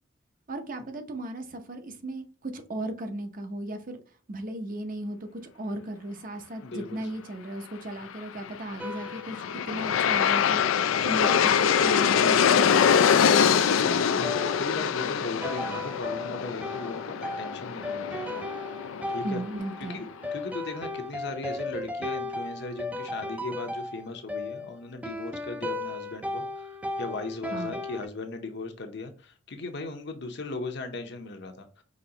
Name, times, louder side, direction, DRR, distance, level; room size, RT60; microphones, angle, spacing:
voice 1, 0.5-4.0 4.3-9.4 9.7-12.9 13.1-14.2 19.2-20.1 27.5-27.7, right 1 dB, 45° right, 0.7 m, -36 dB
voice 2, 6.6-7.1 10.8-11.2 13.7-18.5 19.1-19.4 19.9-31.8, left 3 dB, 60° left, 0.8 m, -38 dB
Aircraft, 8.8-19.9, left 7 dB, 85° left, 0.4 m, -24 dB
sound 1, 8.8-10.3 11.2-28.1, left 2 dB, 5° right, 0.4 m, -36 dB
5.2 x 3.1 x 2.9 m
head